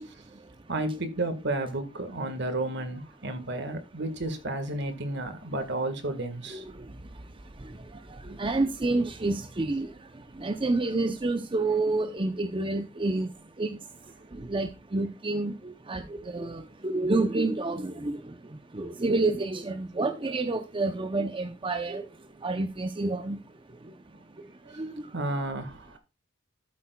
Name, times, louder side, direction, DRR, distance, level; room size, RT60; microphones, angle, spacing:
voice 1, 0.7-6.6 25.1-26.0, right 2 dB, 60° right, 1.6 m, -32 dB
voice 2, 8.3-9.9 10.4-13.3 13.6-13.8 14.5-18.2 18.7-22.0 22.4-23.4 24.8-24.9, right 2 dB, 25° right, 0.7 m, -28 dB
12.5 x 8.8 x 2.3 m
head